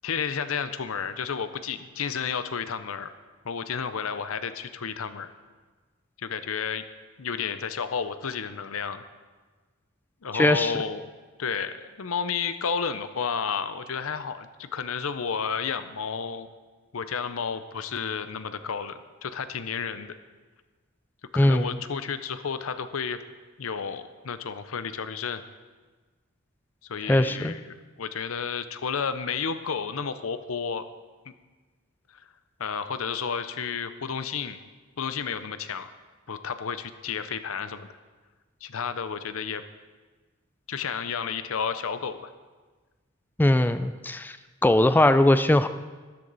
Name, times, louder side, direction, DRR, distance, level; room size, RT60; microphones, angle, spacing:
voice 1, 0.0-3.1 3.4-5.3 6.2-6.9 7.2-9.0 10.2-11.0 11.4-16.5 16.9-20.1 21.3-23.2 23.6-25.4 26.9-30.8 32.1-32.2 32.6-34.6 35.0-35.9 36.3-37.9 38.6-39.6 40.7-42.3, left 6 dB, 70° left, 11 dB, 0.6 m, -31 dB
voice 2, 10.3-10.7 21.4-21.7 27.1-27.5 43.4-44.4 44.6-45.7, left 1 dB, 10° left, 11 dB, 0.3 m, -20 dB
13.0 x 10.5 x 4.0 m, 1.3 s
head